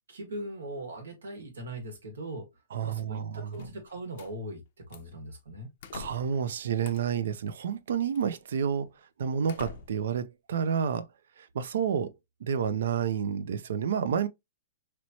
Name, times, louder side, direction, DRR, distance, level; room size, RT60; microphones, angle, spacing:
voice 1, 0.1-2.4 2.8-5.7, right 1 dB, 90° right, 1.5 m, -40 dB
voice 2, 2.7-3.7 5.9-8.9 9.2-11.1 11.4-12.1 12.4-14.3, right 7 dB, 70° right, 0.4 m, -30 dB
sound 1, 3.5-4.3 4.9-5.2 5.8-6.4 6.8-7.2 8.1-8.3 8.9-9.0 9.5-10.1, left 6 dB, 55° left, 0.5 m, -46 dB
3.1 x 3.0 x 2.7 m
hypercardioid pair, 135°, 0 cm